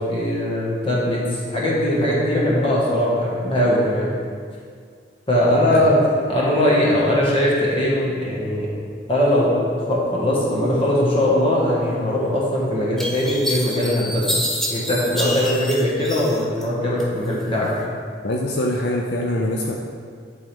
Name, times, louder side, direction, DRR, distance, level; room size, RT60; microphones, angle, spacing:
voice 1, 0.1-4.1 5.3-8.7 9.1-9.6 9.9-14.4 14.7-17.7, left 1 dB, 30° left, -5 dB, 1.5 m, -20 dB
sound 1, 12.3-12.4 13.0-16.7 17.0-17.7, equal, ahead, 0.6 m, -27 dB
voice 2, 18.2-19.7, left 1 dB, 65° left, 0 dB, 0.5 m, -24 dB
10.5 x 3.9 x 3.5 m, 2.1 s
head